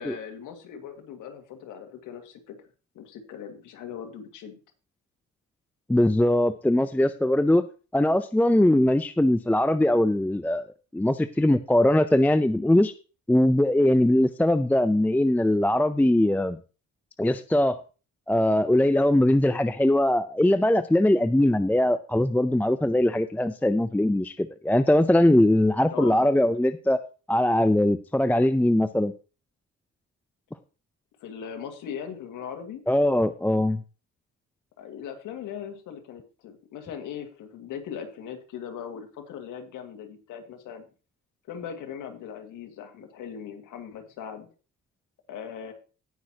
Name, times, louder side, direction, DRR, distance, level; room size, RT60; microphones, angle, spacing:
voice 1, 0.0-2.6 2.9-4.6 25.9-26.4 31.2-32.8 34.8-40.8 41.5-44.5 45.3-45.7, left 8 dB, 90° left, 4 dB, 1.9 m, -39 dB
voice 2, 5.9-7.6 7.9-10.6 10.9-12.9 13.3-16.6 17.2-17.8 18.3-27.0 27.3-29.1 32.9-33.8, left 1 dB, 5° left, 12 dB, 0.5 m, -21 dB
17.5 x 6.2 x 2.9 m, 0.34 s
cardioid pair, 90°, 30 cm